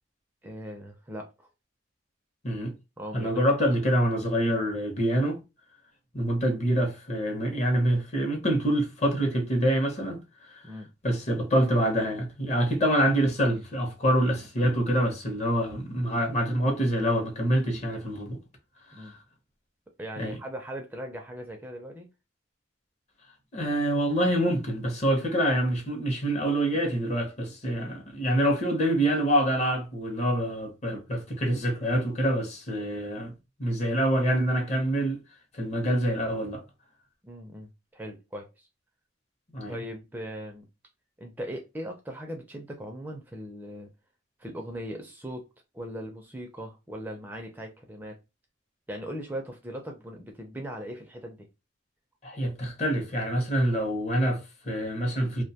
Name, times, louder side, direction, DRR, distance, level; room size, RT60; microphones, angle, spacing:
voice 1, 0.4-1.5 3.0-3.3 10.6-10.9 18.9-19.2 20.0-22.1 37.2-38.7 39.7-40.7 41.2-43.9 44.4-45.4 45.7-48.2 48.9-51.5, equal, 10° right, 0.4 m, -39 dB
voice 2, 2.4-2.7 3.1-5.4 6.1-10.2 10.5-10.6 11.0-18.4 18.9-19.1 20.2-20.3 23.5-33.3 33.6-35.2 35.5-36.6 39.5-39.8 52.2-55.4, right 1 dB, 35° left, 0.7 m, -26 dB
2.5 x 2.1 x 2.7 m
head